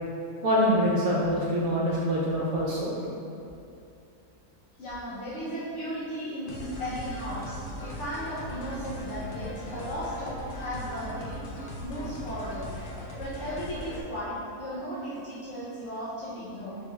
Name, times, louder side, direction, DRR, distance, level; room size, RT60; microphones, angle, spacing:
voice 1, 0.4-3.0, equal, 70° right, -5 dB, 1.0 m, -25 dB
voice 2, 4.8-11.4 11.8-12.7 13.2-16.8, equal, 60° left, -10 dB, 0.9 m, -35 dB
sound 1, 6.5-14.0, left 1 dB, 75° left, 0.4 m, -39 dB
5.4 x 2.3 x 3.0 m, 2.7 s
omnidirectional pair, 1.6 m